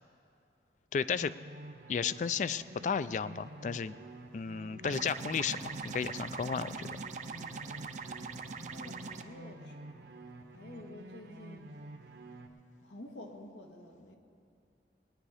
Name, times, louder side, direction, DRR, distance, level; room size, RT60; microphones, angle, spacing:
voice 1, 0.9-1.3 1.9-4.0 4.3-7.0, left 6 dB, 45° left, 15 dB, 0.3 m, -33 dB
sound 1, 1.1-12.5, right 1 dB, 65° right, 0.9 m, -50 dB
sound 2, 4.8-9.2, right 4 dB, 45° right, 0.5 m, -42 dB
voice 2, 7.4-7.7 8.4-10.1 10.5-11.7 12.8-14.2, left 1 dB, 90° left, 2 dB, 1.6 m, -50 dB
20.0 x 10.0 x 4.9 m, 2.5 s
head